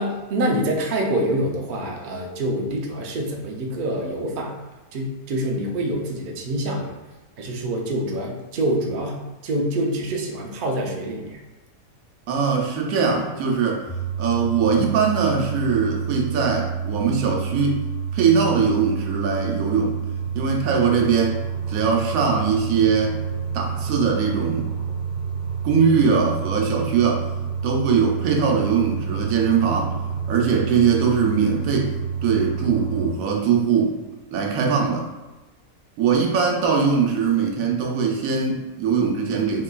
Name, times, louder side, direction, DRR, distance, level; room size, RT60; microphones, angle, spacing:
voice 1, 0.0-4.5 4.9-7.0 7.4-11.4, right 1 dB, 60° right, 0 dB, 0.5 m, -26 dB
voice 2, 12.3-13.8 14.2-17.8 18.1-20.0 20.3-21.4 21.7-23.2 23.5-24.7 25.6-27.3 27.6-30.0 30.3-32.0 32.2-34.0 34.3-35.1 36.0-39.6, right 6 dB, 80° right, 0 dB, 1.0 m, -21 dB
sound 1, 13.9-33.1, right 6 dB, 5° right, 0.5 m, -28 dB
3.7 x 3.1 x 2.2 m, 1.1 s
omnidirectional pair, 1.4 m